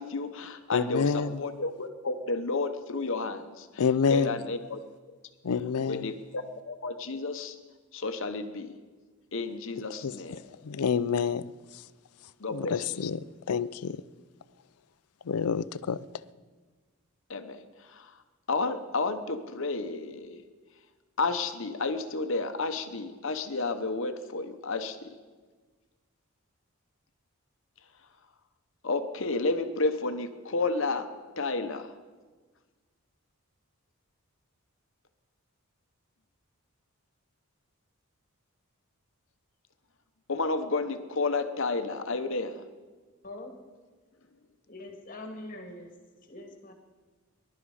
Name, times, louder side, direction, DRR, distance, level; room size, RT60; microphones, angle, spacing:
voice 1, 0.0-3.8 4.1-4.8 5.9-7.6 7.9-8.7 9.3-10.4 12.4-13.0 17.3-18.1 18.5-20.4 21.2-25.1 28.8-31.1 31.4-31.9 40.3-42.6, left 3 dB, 60° left, 8 dB, 0.9 m, -31 dB
voice 2, 0.7-1.4 3.8-4.4 5.4-6.1 10.0-10.1 10.6-11.4 12.5-14.0 15.3-16.0, left 6 dB, 90° left, 16 dB, 0.5 m, -27 dB
voice 3, 43.2-43.6 44.7-45.9 46.2-46.7, left 1 dB, 40° left, 3 dB, 2.0 m, -43 dB
21.0 x 11.5 x 4.9 m, 1.4 s
head